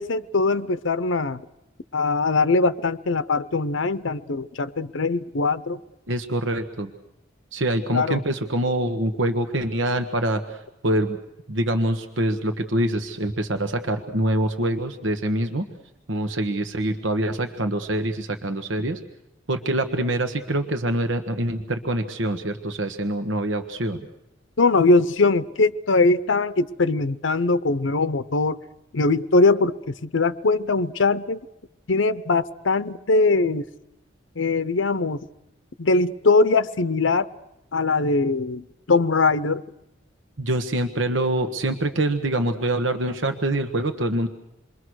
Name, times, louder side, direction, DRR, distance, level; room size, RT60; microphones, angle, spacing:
voice 1, 0.0-1.4 1.9-5.8 7.9-8.2 24.6-28.6 28.9-31.4 31.9-33.6 34.4-35.2 35.8-37.3 37.7-39.6, left 3 dB, 90° left, 0.8 m, -21 dB
voice 2, 6.1-6.9 7.5-11.2 11.5-15.6 16.1-19.0 19.5-24.1 40.4-44.3, right 1 dB, 80° right, 1.4 m, -25 dB
28.0 x 22.5 x 6.4 m
head